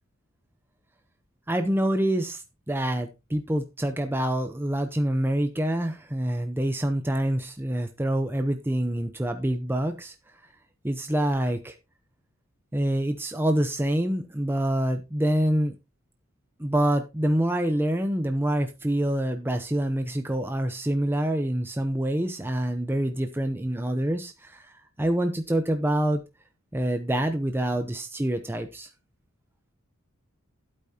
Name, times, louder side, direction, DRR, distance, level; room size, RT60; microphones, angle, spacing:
voice 1, 1.5-10.1 10.8-11.8 12.7-15.8 16.6-24.7 25.0-26.2 26.7-28.9, right 1 dB, 10° right, 6 dB, 0.7 m, -26 dB
12.0 x 8.5 x 2.8 m, 0.25 s
head